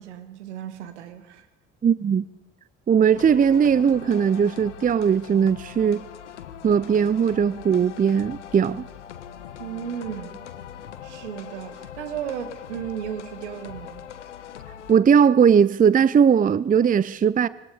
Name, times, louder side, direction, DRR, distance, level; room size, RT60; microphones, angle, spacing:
voice 1, 0.0-1.5 9.6-10.4 11.0-14.1, right 9 dB, 75° right, 2.1 m, -35 dB
voice 2, 1.8-2.2 2.9-6.0 6.6-8.8 14.9-17.5, right 7 dB, 25° right, 0.6 m, -19 dB
sound 1, 3.1-14.9, left 9 dB, 80° left, 1.2 m, -41 dB
25.5 x 20.5 x 5.0 m
figure-of-eight pair, 55°, 35 cm